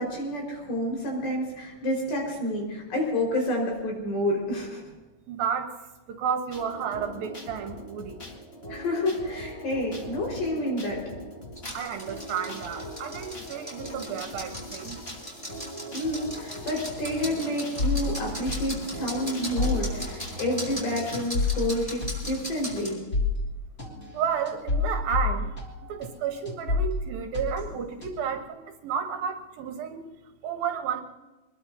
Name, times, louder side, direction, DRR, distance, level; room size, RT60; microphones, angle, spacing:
voice 1, 0.0-4.8 8.7-11.0 15.9-23.0, left 1 dB, 65° left, -1 dB, 6.6 m, -29 dB
voice 2, 5.3-5.7 6.1-8.2 11.7-15.0 24.1-25.5 25.9-30.0 30.4-31.0, right 7 dB, 70° right, 5 dB, 2.7 m, -31 dB
sound 1, 6.5-21.2, left 1 dB, 80° left, 0.5 m, -41 dB
sound 2, 11.6-22.9, equal, 10° left, 4.8 m, -39 dB
sound 3, 17.8-26.2 26.4-28.4, left 3 dB, 35° left, 1.2 m, -30 dB
25.0 x 21.0 x 2.8 m, 1.1 s
omnidirectional pair, 4.7 m